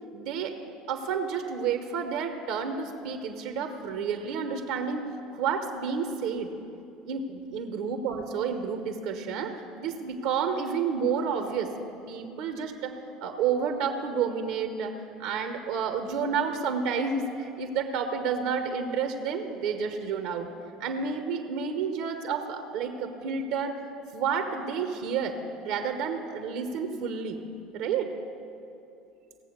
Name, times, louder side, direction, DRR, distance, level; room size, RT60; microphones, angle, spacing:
voice 1, 0.1-0.6 0.9-5.1 5.3-6.5 7.1-11.7 12.1-20.5 20.8-23.8 24.1-27.4 27.7-28.1, right 6 dB, 70° right, 6 dB, 1.0 m, -30 dB
18.0 x 7.6 x 6.6 m, 2.8 s
hypercardioid pair, 75°, 0 cm